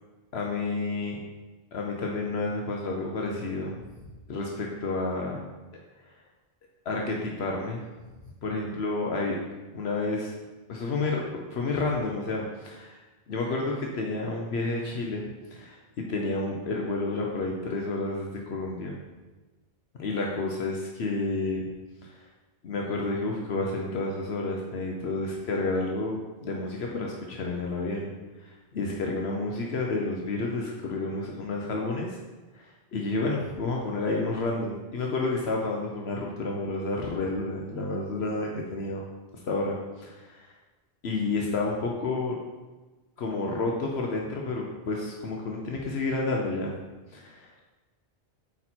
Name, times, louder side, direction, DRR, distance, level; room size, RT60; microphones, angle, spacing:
voice 1, 0.3-1.2 1.7-3.8 4.3-5.4 6.9-7.8 8.4-9.4 9.7-10.3 10.7-13.0 13.3-18.9 20.0-21.6 22.0-22.2 22.6-28.1 28.4-32.2 32.5-39.1 39.5-40.5 41.0-42.4 43.2-46.7 47.1-47.6, left 3 dB, 70° left, -1 dB, 1.0 m, -30 dB
8.5 x 4.3 x 4.3 m, 1.2 s
omnidirectional pair, 1.1 m